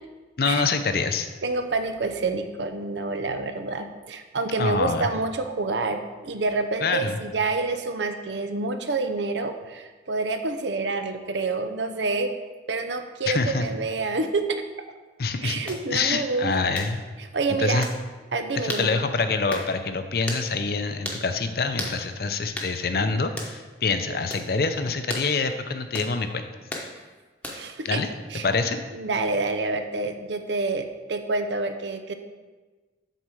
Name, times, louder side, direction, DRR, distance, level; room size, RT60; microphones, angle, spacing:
voice 1, 0.4-1.3 4.6-5.1 6.8-7.2 13.3-13.7 15.2-15.6 15.9-17.0 17.6-17.9 18.6-26.4 27.8-28.1 28.4-28.8, left 4 dB, 55° left, 8 dB, 0.6 m, -25 dB
voice 2, 1.4-12.3 12.7-14.6 15.4-16.9 17.3-17.9 18.3-18.9 24.1-24.2 27.5-28.0 28.3-28.4 28.9-32.1, right 3 dB, 80° right, 7 dB, 0.7 m, -28 dB
sound 1, 15.7-15.8 16.7-16.9 17.8-18.0 18.7-18.9 19.5-19.7 20.3-20.5 21.0-21.2 21.8-22.0 22.6-22.7 23.4-23.5 24.3-24.5 25.1-25.3 25.9-26.1 26.7-26.9 27.4-27.7, left 1 dB, 10° left, 0.9 m, -33 dB
8.0 x 4.3 x 6.2 m, 1.3 s
head